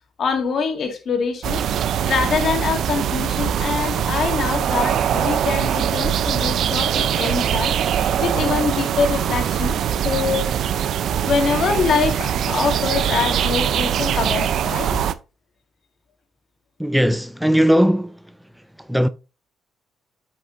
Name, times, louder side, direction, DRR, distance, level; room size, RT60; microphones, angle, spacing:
voice 1, 0.2-1.6 2.0-7.8 8.2-10.5 11.2-15.0, left 5 dB, 60° left, 2.1 m, -24 dB
sound 1, 1.4-15.1, right 9 dB, 70° right, 0.6 m, -22 dB
voice 2, 16.8-18.2 18.9-19.1, equal, 5° right, 0.5 m, -18 dB
8.4 x 6.3 x 2.7 m
cardioid pair, 90°, 0 cm